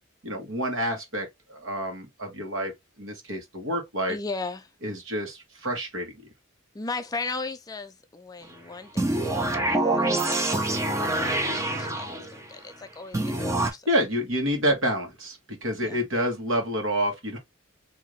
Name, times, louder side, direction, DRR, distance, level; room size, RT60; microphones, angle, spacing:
voice 1, 0.2-2.7 3.0-4.2 4.8-6.3 13.6-17.4, equal, 65° right, 1.4 m, -28 dB
voice 2, 4.1-4.7 6.7-13.9 15.8-16.0, left 3 dB, 20° left, 0.3 m, -37 dB
sound 1, 9.0-12.4 13.1-13.7, right 2 dB, 15° right, 0.7 m, -26 dB
3.9 x 2.8 x 3.0 m
head